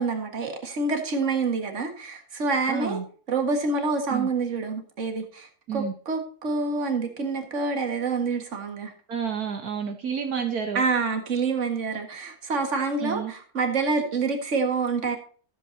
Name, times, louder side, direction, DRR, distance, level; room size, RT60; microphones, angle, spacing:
voice 1, 0.0-3.0 3.3-8.9 10.7-15.2, right 4 dB, 50° right, 2.0 m, -27 dB
voice 2, 2.7-3.0 4.1-4.3 5.7-5.9 9.1-10.8 13.0-13.3, right 7 dB, 75° right, 1.7 m, -30 dB
14.5 x 7.9 x 2.8 m
omnidirectional pair, 1.7 m